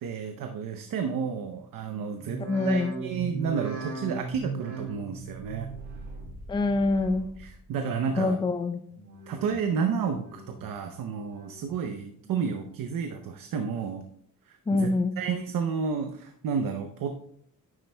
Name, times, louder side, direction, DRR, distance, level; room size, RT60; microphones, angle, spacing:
voice 1, 0.0-5.7 7.4-8.4 9.3-14.0 14.5-17.2, right 6 dB, 70° right, 5 dB, 0.7 m, -31 dB
sound 1, 2.2-7.5 7.8-8.4 8.9-9.6 10.0-10.7 11.1-11.8 12.2-12.8 13.3-13.4, right 4 dB, 50° right, 1.8 m, -39 dB
voice 2, 2.5-3.0 6.5-7.3 8.2-8.8 14.7-15.1, left 3 dB, 15° left, 9 dB, 0.4 m, -25 dB
9.8 x 7.7 x 2.2 m, 0.67 s
wide cardioid pair, 150°, 34 cm